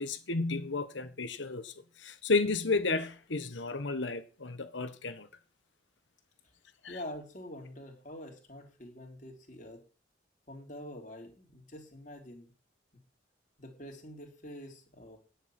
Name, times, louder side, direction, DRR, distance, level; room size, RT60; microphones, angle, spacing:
voice 1, 0.0-1.7 2.0-5.3 6.8-7.0, left 3 dB, 80° left, 1.4 m, -32 dB
voice 2, 6.9-9.8 10.5-12.5 13.6-15.2, left 1 dB, 40° left, 3.1 m, -46 dB
10.0 x 6.7 x 7.7 m
head